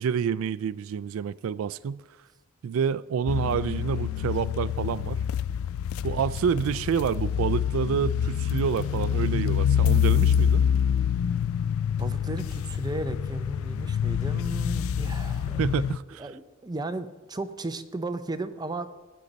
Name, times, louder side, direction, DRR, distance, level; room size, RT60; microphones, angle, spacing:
voice 1, 0.0-2.0 2.6-5.2 6.0-10.6 15.6-16.3, right 7 dB, 75° right, 18 dB, 0.3 m, -28 dB
sound 1, 3.3-16.0, left 8 dB, 85° left, 0.3 m, -26 dB
voice 2, 12.0-15.6 16.2-18.9, right 2 dB, 20° right, 9 dB, 0.6 m, -35 dB
18.5 x 8.6 x 4.0 m, 1.2 s
head